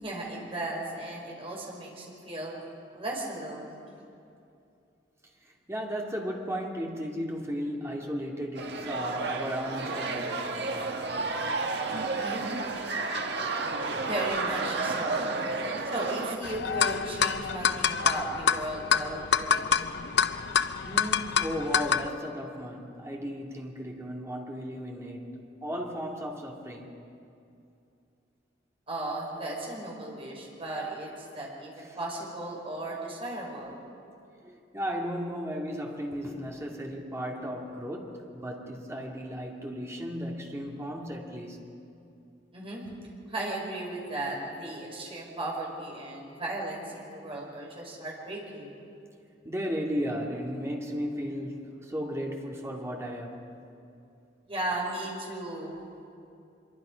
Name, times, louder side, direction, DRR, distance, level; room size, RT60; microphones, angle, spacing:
voice 1, 0.0-2.6 2.9-3.8 12.1-12.5 14.1-15.4 15.9-20.0 28.9-33.7 42.5-42.8 43.3-48.7 54.5-55.8, right 1 dB, 30° right, -2 dB, 5.1 m, -36 dB
voice 2, 5.4-10.6 11.2-11.3 20.8-25.3 25.6-26.9 34.4-41.6 49.4-53.5, equal, 15° right, -1 dB, 2.4 m, -35 dB
sound 1, 8.6-16.4, right 3 dB, 65° right, 1.6 m, -31 dB
sound 2, 16.4-22.1, left 6 dB, 70° left, 0.7 m, -27 dB
25.0 x 23.0 x 5.2 m, 2.6 s
head